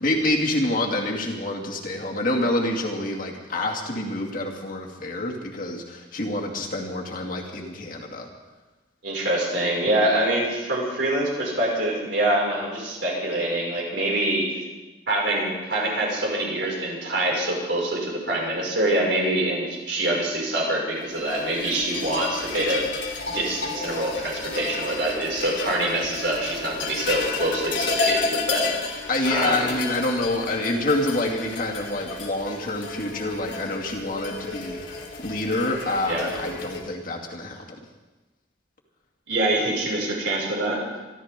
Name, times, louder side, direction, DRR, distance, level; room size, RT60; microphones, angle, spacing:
voice 1, 0.0-8.3 29.1-34.8 35.2-37.8, left 1 dB, 50° left, -1 dB, 2.4 m, -27 dB
voice 2, 9.0-14.6 15.1-29.7 36.1-36.3 39.3-40.8, right 1 dB, 75° right, -3 dB, 5.7 m, -25 dB
sound 1, 21.1-36.8, left 4 dB, 90° left, 2.8 m, -32 dB
26.0 x 13.0 x 3.7 m, 1.2 s
head